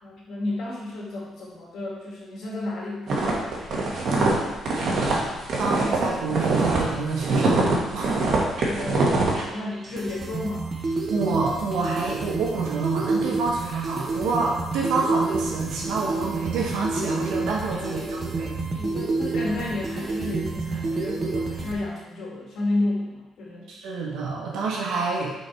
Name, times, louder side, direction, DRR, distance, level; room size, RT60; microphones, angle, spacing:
voice 1, 0.0-4.6 8.4-10.7 17.8-18.3 18.7-23.7, left 2 dB, 70° left, -3 dB, 2.1 m, -32 dB
sound 1, 3.1-6.8 7.1-9.4, right 3 dB, 60° right, 1.7 m, -23 dB
voice 2, 5.6-7.6 7.9-8.2 11.1-18.6 23.7-25.3, right 4 dB, 85° right, -2 dB, 1.5 m, -27 dB
sound 2, 9.7-21.7, right 3 dB, 45° right, 1.1 m, -29 dB
6.0 x 4.6 x 4.7 m, 1.1 s
cardioid pair, 90°, 0 cm